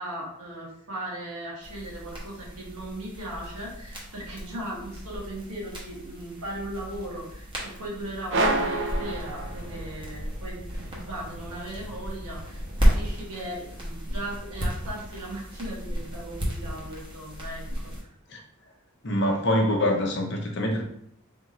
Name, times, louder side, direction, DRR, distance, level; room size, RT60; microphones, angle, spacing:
voice 1, 0.0-18.1, right 1 dB, 90° right, -3 dB, 1.5 m, -38 dB
sound 1, 1.6-18.0, equal, 20° right, 0.9 m, -33 dB
sound 2, 8.3-10.1, right 2 dB, 55° right, 0.5 m, -27 dB
voice 2, 19.0-20.8, left 1 dB, 50° left, 1 dB, 0.8 m, -24 dB
3.5 x 2.6 x 4.2 m, 0.70 s
head